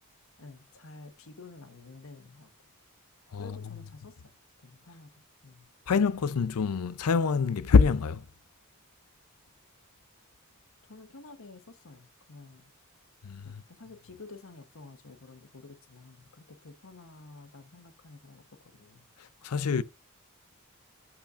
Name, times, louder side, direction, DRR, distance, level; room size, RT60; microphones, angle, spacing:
voice 1, 0.4-2.7 3.4-4.3 4.6-5.7 10.8-12.7 13.4-19.1, left 3 dB, 65° left, 1.1 m, -50 dB
voice 2, 3.3-3.9 5.9-8.3 13.2-13.6 19.2-19.8, left 5 dB, 90° left, 0.5 m, -25 dB
11.5 x 5.7 x 2.5 m
head